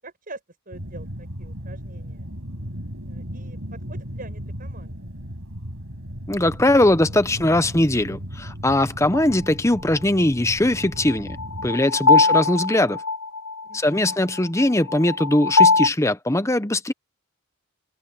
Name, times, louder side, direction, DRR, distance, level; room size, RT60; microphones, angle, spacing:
voice 1, 0.0-0.4 0.7-2.3 3.0-5.0 12.2-12.6 13.6-14.1, right 2 dB, 40° right, 7.8 m, -44 dB
sound 1, 0.7-11.7, equal, 65° right, 7.9 m, -36 dB
voice 2, 6.3-11.4 11.6-13.0 13.7-16.9, left 1 dB, 15° left, 0.9 m, -20 dB
sound 2, 9.1-9.2 11.1-15.9, left 4 dB, 70° left, 0.7 m, -20 dB
head